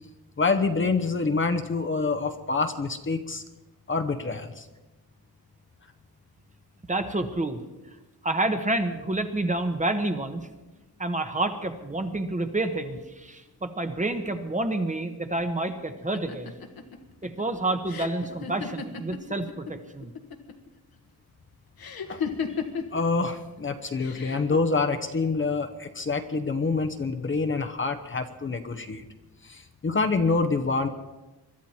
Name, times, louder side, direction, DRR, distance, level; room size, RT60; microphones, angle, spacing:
voice 1, 0.4-3.4 3.9-4.7 22.1-22.2 22.9-29.0 29.4-30.9, left 4 dB, 30° left, 6 dB, 1.0 m, -26 dB
voice 2, 6.9-7.6 8.2-10.5 11.0-16.6 17.2-20.1, right 2 dB, 20° right, 7 dB, 1.2 m, -29 dB
sound 1, 16.1-19.7 20.0-20.7 21.8-23.0 24.0-24.6, left 6 dB, 70° left, 1.6 m, -34 dB
22.5 x 12.5 x 4.4 m, 1.1 s
wide cardioid pair, 120°, 38 cm